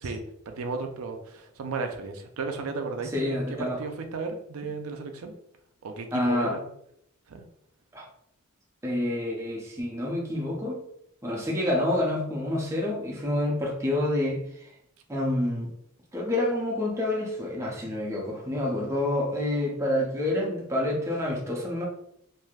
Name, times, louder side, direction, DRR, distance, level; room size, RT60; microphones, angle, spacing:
voice 1, 0.0-5.3 5.8-6.6 7.3-7.4, right 4 dB, 70° right, 5 dB, 0.4 m, -34 dB
voice 2, 3.1-3.8 6.1-6.6 7.9-8.1 8.8-10.8 11.2-14.7 15.1-15.7 16.1-21.9, left 1 dB, 15° right, -2 dB, 0.5 m, -28 dB
3.2 x 2.6 x 2.3 m, 0.74 s
head